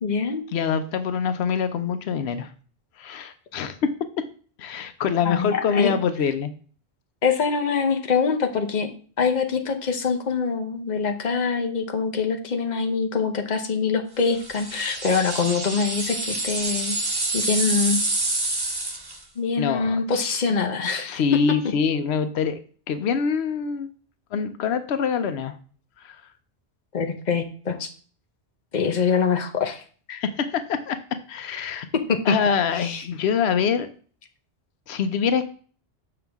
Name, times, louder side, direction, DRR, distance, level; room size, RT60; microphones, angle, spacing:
voice 1, 0.0-0.4 5.2-5.9 7.2-8.9 9.2-17.0 17.3-18.0 19.4-21.2 26.9-27.9 28.7-29.8 32.1-32.3 32.8-33.0, left 5 dB, 45° left, 5 dB, 1.0 m, -24 dB
voice 2, 0.5-2.5 3.0-3.9 4.6-6.5 19.6-20.4 21.0-22.6 22.9-23.9 24.3-25.5 26.0-26.2 30.1-31.0 31.3-31.9 32.3-33.9 34.9-35.5, left 6 dB, 85° left, 10 dB, 0.9 m, -25 dB
sound 1, 14.4-19.2, right 2 dB, 25° right, 1.0 m, -27 dB
6.7 x 5.8 x 3.5 m, 0.42 s
omnidirectional pair, 1.1 m